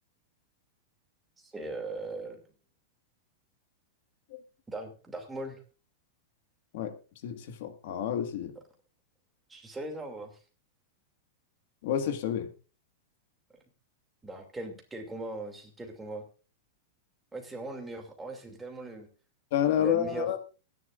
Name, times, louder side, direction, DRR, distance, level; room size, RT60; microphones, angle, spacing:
voice 1, 1.4-2.4 4.7-5.6 9.5-10.4 14.2-16.2 17.3-19.1 19.8-20.3, right 2 dB, 10° right, 2.6 m, -39 dB
voice 2, 7.2-8.5 11.8-12.5 19.5-20.4, left 10 dB, 55° left, 1.7 m, -29 dB
23.5 x 10.5 x 2.5 m
supercardioid pair, 165°, 0 cm